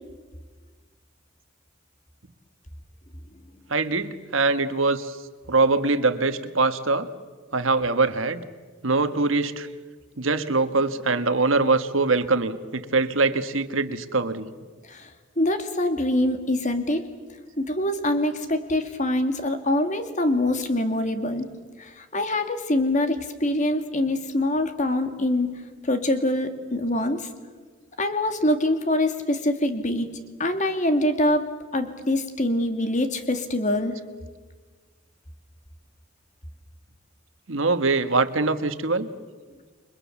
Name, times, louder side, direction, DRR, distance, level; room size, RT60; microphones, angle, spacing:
voice 1, 3.7-5.1 5.5-7.1 7.5-8.4 8.8-9.7 10.2-14.5 37.5-39.1, right 3 dB, 80° right, 11 dB, 1.5 m, -23 dB
voice 2, 15.4-17.0 17.6-21.5 21.8-25.5 25.8-27.3 28.0-30.1 30.4-33.9, left 1 dB, 40° left, 8 dB, 2.2 m, -24 dB
29.5 x 23.0 x 7.2 m, 1.4 s
head